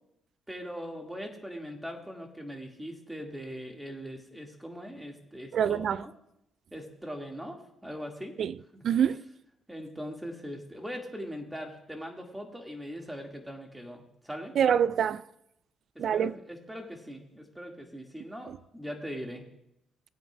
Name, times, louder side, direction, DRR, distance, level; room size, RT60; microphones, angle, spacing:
voice 1, 0.5-6.1 6.7-8.3 8.7-8.8 9.7-14.6 16.0-19.4, equal, 5° right, 1.9 m, -41 dB
voice 2, 5.5-6.0 8.4-8.5 8.8-9.2 14.6-15.2 16.0-16.3, right 8 dB, 60° right, 0.3 m, -25 dB
18.5 x 8.9 x 2.3 m
cardioid pair, 90°, 0 cm